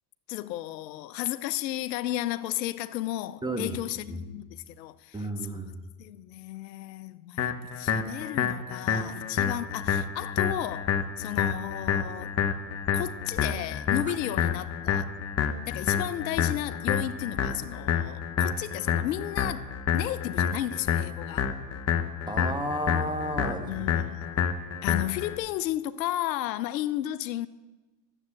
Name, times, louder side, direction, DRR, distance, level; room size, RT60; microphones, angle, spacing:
voice 1, 0.3-5.1 5.6-5.7 6.0-12.4 12.9-15.1 15.7-19.7 19.9-21.5 23.7-24.4 24.8-27.5, left 14 dB, 80° left, 0.8 m, -33 dB
voice 2, 3.4-3.8 4.1-4.2 5.1-5.8 14.1-14.2 22.3-24.1, right 1 dB, 10° right, 1.5 m, -33 dB
sound 1, 7.4-25.4, left 8 dB, 30° left, 1.1 m, -28 dB
12.0 x 7.9 x 8.6 m
supercardioid pair, 110°, 50 cm